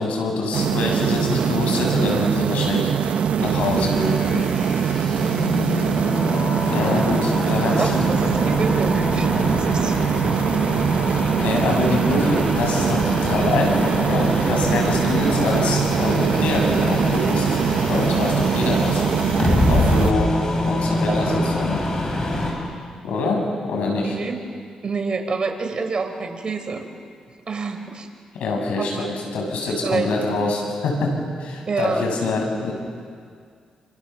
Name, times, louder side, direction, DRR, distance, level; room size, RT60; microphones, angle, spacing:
voice 1, 0.0-4.5 6.7-7.9 11.1-17.6 17.9-19.4 19.7-21.8 23.0-24.1 28.3-32.7, left 2 dB, 90° left, 1 dB, 7.2 m, -25 dB
sound 1, 0.5-20.1, right 8 dB, 75° right, 0.8 m, -22 dB
sound 2, 3.4-22.5, left 2 dB, 30° left, 7.5 m, -25 dB
voice 2, 5.4-5.8 6.9-7.0 7.8-10.0 21.1-21.7 24.0-24.4 24.8-26.8 27.5-28.1 28.8-29.1 29.8-30.2 31.7-32.1, right 4 dB, 45° right, 5 dB, 4.5 m, -27 dB
29.5 x 27.5 x 7.2 m, 2.1 s
cardioid pair, 85°, 2 cm